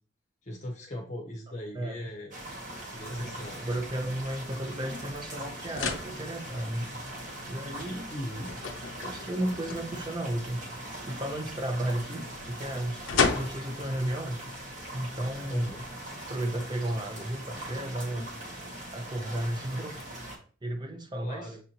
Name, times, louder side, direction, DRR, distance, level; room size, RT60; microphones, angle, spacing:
voice 1, 0.4-2.3 2.9-3.7 8.1-8.5 15.5-15.8 21.2-21.6, left 1 dB, 35° left, 0 dB, 0.7 m, -39 dB
voice 2, 1.7-2.1 3.1-3.3 3.6-6.9 7.5-8.1 9.0-14.4 14.9-15.7 16.3-18.3 18.9-20.0 20.6-21.5, right 1 dB, 20° right, 5 dB, 0.5 m, -33 dB
Rain in Lutsk, 2.3-20.4, right 1 dB, 40° right, 1.0 m, -41 dB
sound 1, 5.1-15.9, left 5 dB, 80° left, 0.5 m, -37 dB
6.6 x 2.6 x 2.8 m, 0.39 s
head